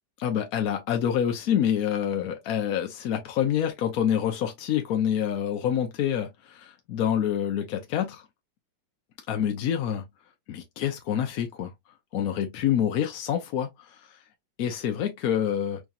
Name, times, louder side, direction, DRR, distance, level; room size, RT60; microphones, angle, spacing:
voice 1, 0.2-8.2 9.3-10.0 10.5-11.7 12.1-14.2 14.6-15.8, left 9 dB, 65° left, 0.9 m, -27 dB
4.7 x 2.8 x 2.5 m
omnidirectional pair, 2.0 m